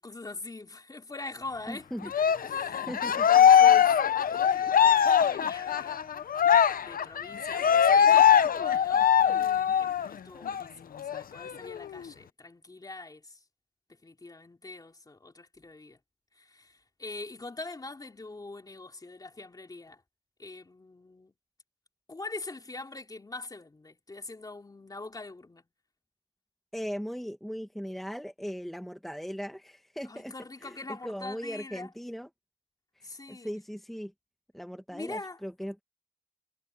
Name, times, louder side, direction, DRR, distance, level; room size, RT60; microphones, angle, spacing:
voice 1, 0.0-1.9 2.4-4.0 4.3-6.0 6.8-9.1 9.8-13.4 14.0-16.0 16.3-20.0 20.4-21.3 22.1-25.6 30.0-31.9 33.0-33.5 34.9-35.4, left 3 dB, 25° left, 3.4 m, -43 dB
voice 2, 1.7-2.1 2.9-3.3 26.7-30.3 30.6-32.3 32.9-34.1 34.5-35.8, equal, ahead, 1.3 m, -38 dB
Cheering, 2.1-10.1 10.4-10.6 11.0-12.0, left 8 dB, 65° left, 0.8 m, -22 dB
wide cardioid pair, 130°, 16 cm